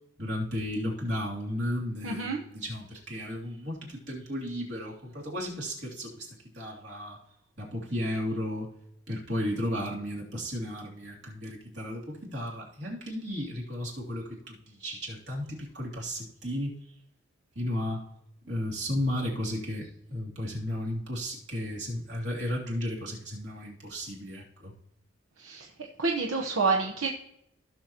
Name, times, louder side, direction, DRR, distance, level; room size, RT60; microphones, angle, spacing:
voice 1, 0.2-3.8 4.1-6.3 6.5-7.2 7.6-8.7 9.1-16.7 17.5-18.0 18.4-19.8 20.1-24.7, left 1 dB, 60° right, -3 dB, 3.1 m, -34 dB
voice 2, 2.0-2.4 25.4-25.7 26.0-27.1, right 4 dB, 85° right, 0 dB, 1.1 m, -27 dB
16.0 x 6.4 x 3.0 m, 0.78 s
head